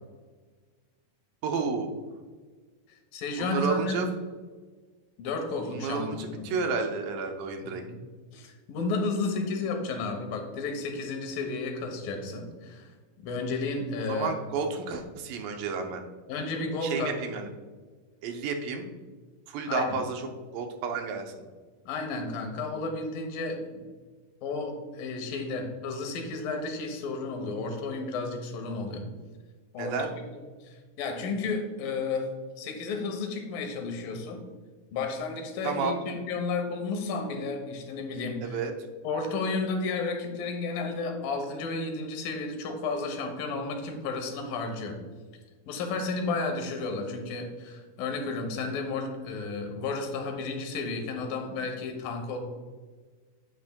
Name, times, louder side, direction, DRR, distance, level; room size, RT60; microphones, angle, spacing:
voice 1, 1.4-1.9 3.4-4.1 5.7-7.8 14.1-16.0 16.8-17.5 18.2-18.9 19.5-20.3 20.5-21.3 29.8-30.1 35.6-36.0 38.4-38.7, right 4 dB, 80° right, 4 dB, 2.5 m, -31 dB
voice 2, 2.9-4.1 5.2-6.6 7.8-8.0 8.3-12.9 13.2-14.3 16.3-17.1 19.7-20.0 21.9-23.8 24.4-29.0 29.7-30.1 30.3-32.3 32.6-34.4 34.9-38.6 39.0-45.0 45.7-52.4, left 3 dB, 80° left, 4 dB, 2.7 m, -32 dB
9.3 x 7.9 x 2.2 m, 1.4 s
omnidirectional pair, 4.0 m